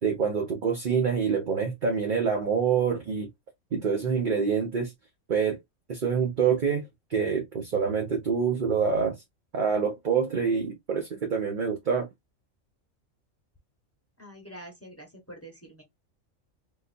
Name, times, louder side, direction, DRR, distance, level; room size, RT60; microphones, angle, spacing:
voice 1, 0.0-3.3 3.7-4.9 5.3-5.6 5.9-6.8 7.1-9.2 9.5-12.1, right 6 dB, 50° right, 0.7 m, -26 dB
voice 2, 14.2-15.8, right 1 dB, 10° left, 1.0 m, -46 dB
3.7 x 2.6 x 2.6 m
omnidirectional pair, 1.4 m